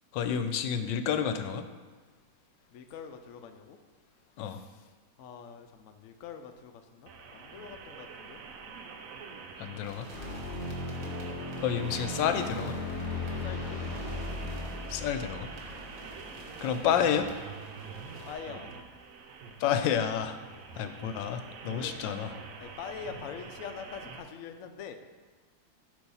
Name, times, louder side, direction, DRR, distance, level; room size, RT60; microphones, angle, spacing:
voice 1, 0.1-1.6 4.4-4.6 9.6-10.1 11.6-12.8 14.9-15.5 16.6-17.3 19.6-20.4 20.8-22.3, left 8 dB, 85° left, 9 dB, 1.3 m, -29 dB
voice 2, 2.7-3.8 4.4-4.9 5.2-8.4 13.4-13.9 15.8-16.0 18.3-18.8 20.6-20.9 21.7-21.9 22.6-24.9, left 7 dB, 70° left, 6 dB, 0.7 m, -44 dB
sound 1, 7.1-24.2, right 5 dB, 65° right, 0.8 m, -46 dB
sound 2, 9.8-18.3, right 2 dB, 35° right, 1.2 m, -49 dB
sound 3, 10.1-16.8, left 2 dB, 35° left, 0.9 m, -37 dB
8.3 x 3.0 x 5.4 m, 1.4 s
omnidirectional pair, 1.9 m